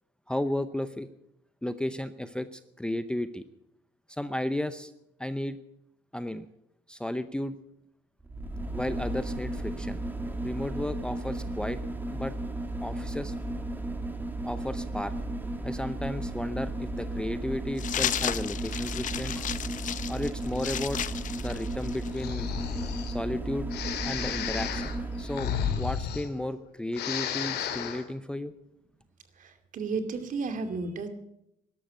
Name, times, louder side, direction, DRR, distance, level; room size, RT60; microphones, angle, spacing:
voice 1, 0.3-1.1 1.6-3.4 4.1-4.9 5.2-5.6 6.1-6.5 6.9-7.6 8.7-10.0 10.4-11.8 12.1-12.3 12.8-13.3 14.5-15.1 15.6-19.5 20.1-21.0 21.4-22.5 23.1-23.7 24.0-28.5, left 1 dB, 5° left, 11 dB, 0.7 m, -33 dB
sound 1, 8.2-25.6 26.0-26.1, right 1 dB, 10° right, 2.2 m, -34 dB
sound 2, 17.8-22.2, left 10 dB, 50° left, 0.8 m, -33 dB
Breathing, 22.1-23.1 23.7-26.6 26.9-28.0, left 8 dB, 75° left, 2.3 m, -33 dB
voice 2, 29.3-31.1, right 4 dB, 50° right, 8 dB, 2.5 m, -33 dB
13.5 x 11.5 x 8.1 m, 0.81 s
cardioid pair, 110°, 17 cm